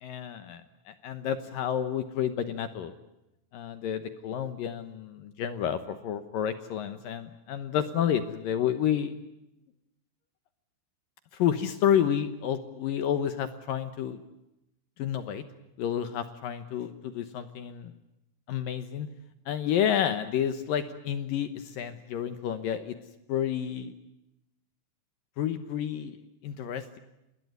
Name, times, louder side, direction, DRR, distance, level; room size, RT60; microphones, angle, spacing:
voice 1, 0.0-2.9 3.5-9.2 11.3-14.2 15.0-15.4 15.8-17.9 18.5-19.1 19.5-23.0 23.3-23.9 25.4-27.0, left 9 dB, 75° left, 10 dB, 2.0 m, -30 dB
27.5 x 21.0 x 9.5 m, 0.91 s
omnidirectional pair, 5.6 m